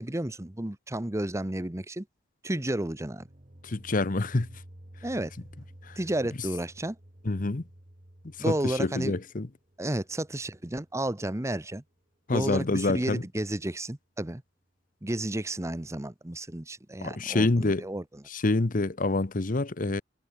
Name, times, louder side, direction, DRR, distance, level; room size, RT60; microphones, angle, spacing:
voice 1, 0.0-2.1 2.4-3.3 5.0-5.3 6.0-7.0 8.4-9.1 9.8-11.8 12.3-14.4 15.0-18.2, right 1 dB, 15° right, 1.0 m, -32 dB
sound 1, 3.0-11.8, right 1 dB, 40° right, 2.4 m, -52 dB
voice 2, 3.6-4.6 5.8-6.0 7.2-7.6 8.5-9.5 12.3-13.2 17.0-17.9 18.3-20.0, left 2 dB, 45° left, 0.9 m, -27 dB
head